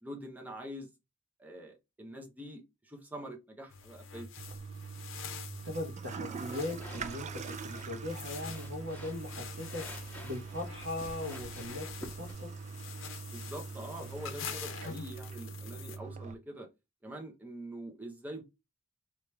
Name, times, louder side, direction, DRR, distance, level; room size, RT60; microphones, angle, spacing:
voice 1, 0.0-0.9 1.4-4.3 6.4-6.6 13.2-16.7 17.0-18.4, right 1 dB, 10° right, 0.7 m, -45 dB
sound 1, 3.7-16.0, left 7 dB, 65° left, 0.7 m, -47 dB
Toilet flush, 4.4-16.3, right 5 dB, 35° right, 0.3 m, -43 dB
voice 2, 5.6-11.9 12.2-12.5, left 2 dB, 75° right, 1.2 m, -39 dB
sound 2, 6.7-12.3, left 1 dB, 10° left, 1.3 m, -51 dB
3.0 x 3.0 x 3.3 m
head